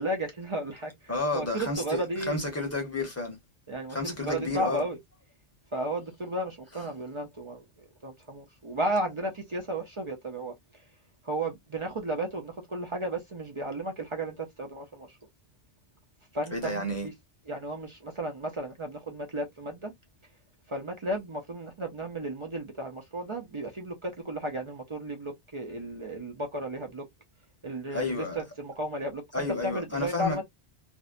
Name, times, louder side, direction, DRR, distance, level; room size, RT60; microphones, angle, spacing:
voice 1, 0.0-2.4 3.7-5.0 5.7-7.6 8.0-10.5 11.2-15.2 16.3-17.1 17.5-19.9 20.7-27.0 27.6-30.4, right 1 dB, 45° right, 0.4 m, -34 dB
voice 2, 1.1-2.0 2.3-3.4 3.9-4.8 16.5-17.1 27.9-28.4 29.3-30.4, left 2 dB, 15° left, 0.7 m, -31 dB
2.6 x 2.1 x 2.4 m
omnidirectional pair, 1.2 m